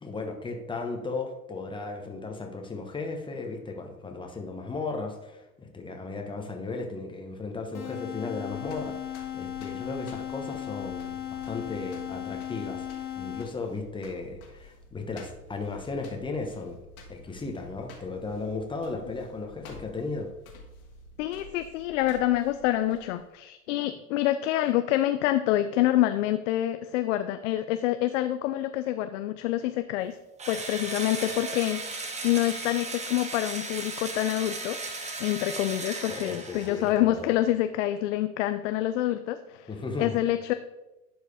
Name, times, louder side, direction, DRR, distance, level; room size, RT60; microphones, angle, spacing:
voice 1, 0.0-16.8 17.1-20.3 36.1-37.3 39.7-40.2, left 3 dB, 10° left, 3 dB, 1.2 m, -36 dB
sound 1, 7.7-13.8, left 11 dB, 90° left, 1.2 m, -37 dB
sound 2, 8.2-23.3, left 2 dB, 75° left, 2.0 m, -51 dB
voice 2, 21.2-30.2 30.5-34.8 35.2-39.7 40.0-40.5, left 13 dB, 55° left, 10 dB, 0.5 m, -27 dB
Engine / Drill, 30.4-37.0, right 3 dB, 15° right, 1.0 m, -36 dB
11.0 x 4.7 x 3.5 m, 0.99 s
hypercardioid pair, 90°, 44 cm